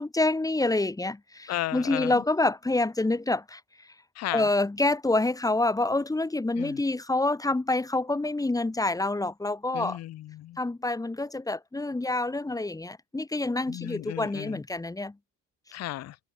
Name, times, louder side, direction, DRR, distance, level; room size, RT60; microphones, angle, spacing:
voice 1, 0.0-3.6 4.3-10.0 10.6-15.1, left 2 dB, 10° left, 0.9 m, -27 dB
voice 2, 1.5-2.2 4.1-4.5 6.6-6.8 9.7-10.6 13.7-14.6 15.7-16.2, left 15 dB, 60° left, 0.5 m, -34 dB
cardioid pair, 90°, 30 cm